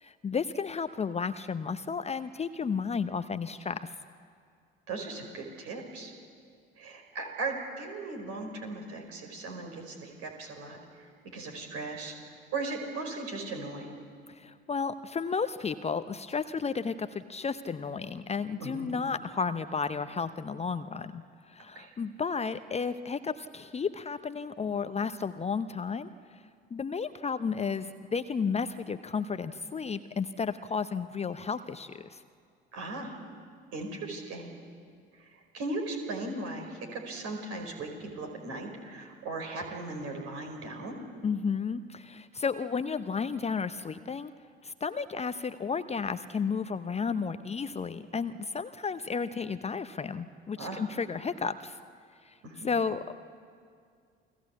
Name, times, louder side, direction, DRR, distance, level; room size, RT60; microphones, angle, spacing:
voice 1, 0.0-3.9 14.3-26.1 26.7-32.2 41.2-44.3 44.6-51.8 52.2-52.3 52.6-53.1, left 5 dB, 20° left, 11 dB, 0.8 m, -33 dB
voice 2, 4.9-6.1 6.8-13.9 18.6-18.8 21.6-21.9 32.7-33.2 33.7-34.6 35.2-41.0 50.6-50.8 52.4-52.7, right 3 dB, 55° right, 3 dB, 5.2 m, -38 dB
29.0 x 20.0 x 8.4 m, 2.2 s
figure-of-eight pair, 55°, 29 cm